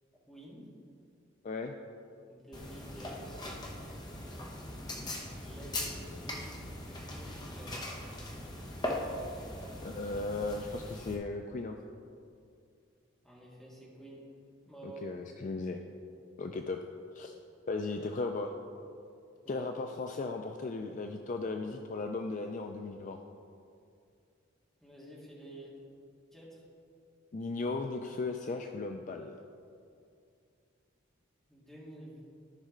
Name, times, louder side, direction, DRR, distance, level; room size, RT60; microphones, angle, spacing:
voice 1, 0.3-0.7 2.3-3.5 5.4-6.6 7.1-7.9 13.2-14.2 14.7-15.1 19.4-19.6 24.8-25.7 26.3-26.6 31.5-32.2, right 1 dB, ahead, -6 dB, 1.8 m, -50 dB
sound 1, 2.5-11.1, left 1 dB, 20° left, 0.9 m, -40 dB
voice 2, 9.8-11.8 14.8-15.8 16.4-16.8 17.1-17.3 17.7-18.5 19.5-23.2 27.3-29.4, left 3 dB, 40° left, 5 dB, 0.4 m, -36 dB
13.0 x 5.4 x 3.8 m, 2.4 s
head